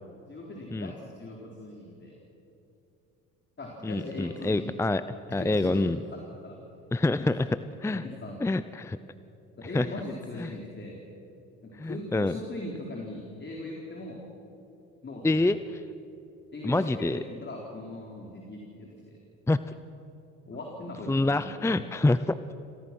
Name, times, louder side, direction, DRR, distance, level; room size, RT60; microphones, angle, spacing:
voice 1, 0.3-2.2 3.6-4.9 5.3-6.5 7.2-7.3 7.9-8.4 9.6-11.0 11.6-14.2 15.0-15.5 16.5-19.1 20.5-21.9, left 2 dB, 35° left, -1 dB, 4.3 m, -40 dB
voice 2, 3.8-5.0 5.3-6.0 6.9-8.0 8.4-9.0 9.7-9.9 10.4-10.5 11.8-12.3 15.2-15.8 16.6-17.2 19.5-19.7 21.1-22.4, left 2 dB, 10° left, 14 dB, 0.6 m, -26 dB
27.5 x 18.0 x 6.2 m, 2.8 s
supercardioid pair, 75°, 34 cm